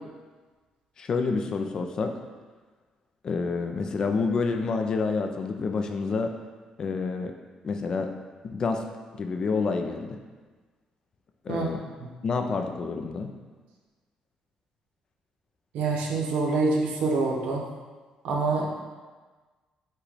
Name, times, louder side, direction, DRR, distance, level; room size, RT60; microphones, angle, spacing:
voice 1, 1.0-2.2 3.2-6.3 6.8-7.3 7.6-8.1 8.4-8.8 9.1-10.2 11.4-11.8 12.2-13.3, left 4 dB, 35° left, 5 dB, 0.3 m, -28 dB
voice 2, 15.7-17.6 18.2-18.6, right 3 dB, 90° right, -1 dB, 0.8 m, -26 dB
5.6 x 2.3 x 4.0 m, 1.4 s
cardioid pair, 160°, 2 cm